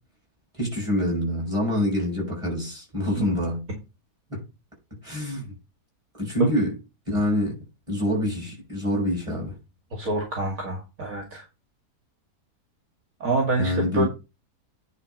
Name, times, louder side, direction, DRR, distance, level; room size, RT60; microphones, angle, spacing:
voice 1, 0.6-3.6 4.3-4.4 5.0-5.5 6.2-6.7 7.1-7.5 7.9-9.5 13.6-14.1, left 1 dB, 20° right, 6.7 m, -26 dB
voice 2, 9.9-11.4 13.2-14.0, right 2 dB, 60° right, 2.4 m, -26 dB
9.8 x 4.6 x 5.3 m
omnidirectional pair, 1.7 m